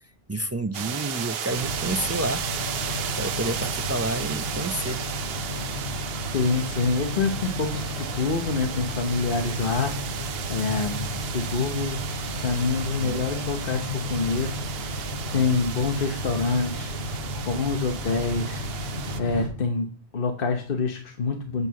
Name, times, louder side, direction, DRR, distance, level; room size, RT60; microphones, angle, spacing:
voice 1, 0.3-2.4 3.1-5.0, right 1 dB, 25° right, 9 dB, 0.3 m, -29 dB
sound 1, 0.7-19.2, right 8 dB, 75° right, 0.9 m, -34 dB
sound 2, 1.5-19.5, left 1 dB, 75° left, 5.4 m, -33 dB
voice 2, 6.3-11.1 11.3-12.1 12.4-17.2 17.4-18.9 19.2-19.9 20.1-21.7, left 4 dB, 60° left, 4 dB, 1.2 m, -27 dB
8.5 x 4.6 x 7.0 m, 0.41 s
omnidirectional pair, 1.0 m